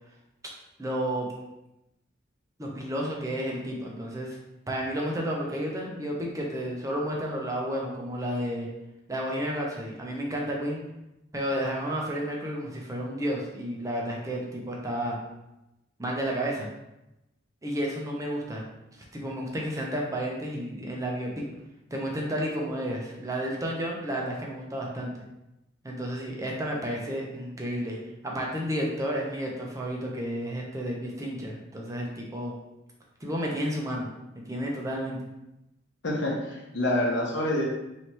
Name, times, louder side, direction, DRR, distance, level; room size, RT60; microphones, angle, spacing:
voice 1, 0.8-1.3 2.6-4.4 4.7-8.7 9.1-10.8 11.3-15.2 16.0-16.7 17.6-18.6 19.1-21.5 21.9-25.1 25.8-28.0 28.2-32.5 33.2-34.1 34.3-35.2, equal, 15° right, -2 dB, 0.6 m, -31 dB
voice 2, 36.0-37.7, left 1 dB, 70° left, -2 dB, 1.0 m, -27 dB
3.2 x 2.9 x 4.3 m, 0.92 s
head